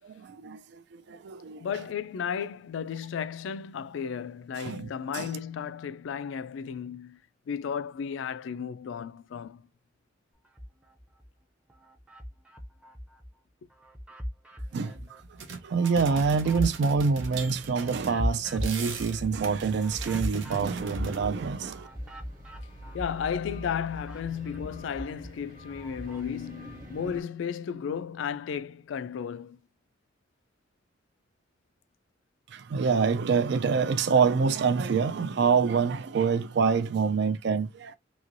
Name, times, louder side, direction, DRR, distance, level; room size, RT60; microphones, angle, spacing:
voice 1, 0.0-1.7 4.6-5.3 14.7-15.2 15.6-21.9 32.5-38.0, right 5 dB, 60° right, 0.4 m, -26 dB
voice 2, 1.6-7.2 7.5-9.6 22.9-29.6, left 7 dB, 75° left, 0.3 m, -34 dB
sound 1, 10.4-11.3 11.7-13.3 13.7-23.4 23.7-26.3, equal, 5° right, 0.6 m, -38 dB
sound 2, 14.9-15.0 15.2-21.2, right 5 dB, 90° right, 0.7 m, -40 dB
sound 3, 16.0-27.2, right 1 dB, 45° right, 1.2 m, -46 dB
3.1 x 2.8 x 2.5 m
head